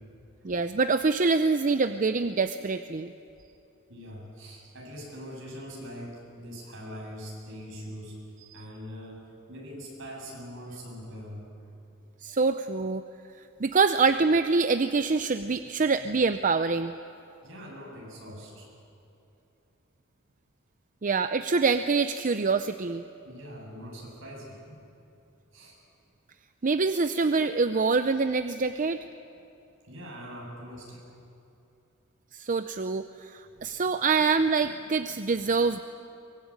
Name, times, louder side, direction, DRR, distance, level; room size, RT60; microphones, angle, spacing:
voice 1, 0.4-3.1 12.2-13.0 13.6-16.9 21.0-23.0 26.6-29.0 32.3-35.8, right 4 dB, 40° right, 10 dB, 0.6 m, -25 dB
voice 2, 3.9-8.2 8.5-11.7 17.4-18.7 23.2-24.8 25.5-25.8 29.8-31.1, equal, 70° right, -2 dB, 7.9 m, -42 dB
23.5 x 21.5 x 8.9 m, 2.7 s
head